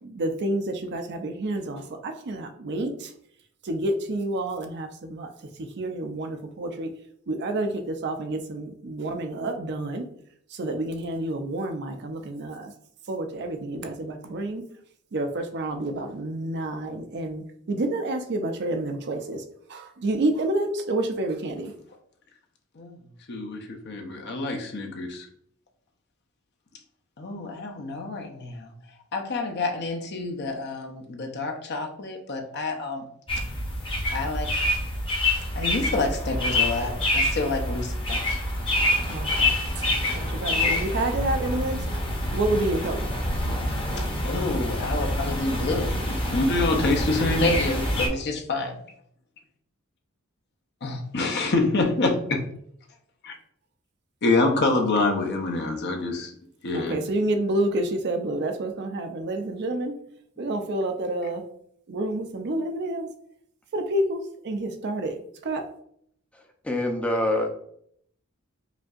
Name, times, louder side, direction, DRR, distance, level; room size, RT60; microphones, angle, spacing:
voice 1, 0.0-3.1 3.6-5.3 5.6-6.9 7.3-10.1 10.5-12.7 13.1-14.6 15.1-17.4 17.7-19.4 19.7-21.7 39.1-39.8 40.1-41.8 42.3-43.1 56.7-60.0 60.4-61.5 61.9-63.1 63.7-65.2 65.4-65.7, right 1 dB, 55° right, 5 dB, 0.5 m, -29 dB
voice 2, 23.3-25.3 27.2-28.7 29.1-33.0 34.1-34.6 35.6-38.2 44.0-48.8 50.8-52.4 53.2-53.3 54.2-56.3 56.6-57.0, left 2 dB, 55° left, 2 dB, 0.7 m, -27 dB
sound 1, 33.3-48.1, left 1 dB, 25° left, 0.9 m, -26 dB
voice 3, 66.6-67.6, left 1 dB, 5° left, 2 dB, 0.5 m, -26 dB
5.0 x 2.7 x 2.4 m, 0.67 s
head